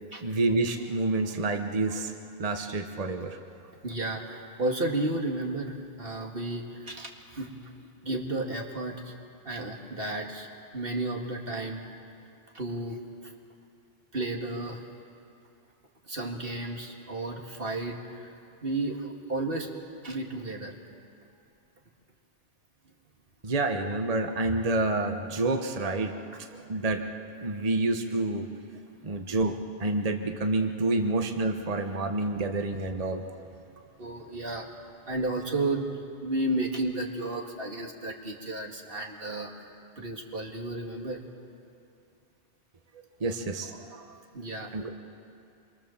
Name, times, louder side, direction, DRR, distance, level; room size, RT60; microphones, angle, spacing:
voice 1, 0.2-2.1 2.4-3.4 23.4-26.2 26.7-27.0 27.4-28.5 29.0-33.3 43.2-44.2 44.7-44.9, right 2 dB, 30° right, 5 dB, 1.2 m, -28 dB
voice 2, 3.8-7.6 8.0-9.1 9.4-11.8 12.5-13.3 14.1-14.8 16.1-18.4 18.6-19.7 20.0-20.8 26.6-26.7 34.0-34.7 35.1-35.9 36.2-39.7 40.0-41.2 44.3-44.7, right 2 dB, 50° right, 0 dB, 2.4 m, -33 dB
27.5 x 22.5 x 7.2 m, 2.6 s
omnidirectional pair, 1.2 m